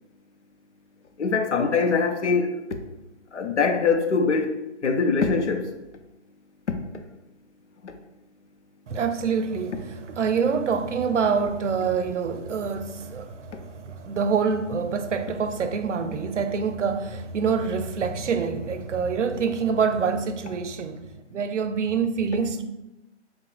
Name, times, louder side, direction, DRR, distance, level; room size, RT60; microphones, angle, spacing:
voice 1, 1.2-2.6 3.3-4.6 4.8-5.7 6.7-6.8 7.8-8.0, left 4 dB, 75° left, 0.7 m, -23 dB
voice 2, 8.9-21.0 21.3-22.6, right 5 dB, 85° right, 0.6 m, -26 dB
4.1 x 2.2 x 4.6 m
hypercardioid pair, 165°, 35 cm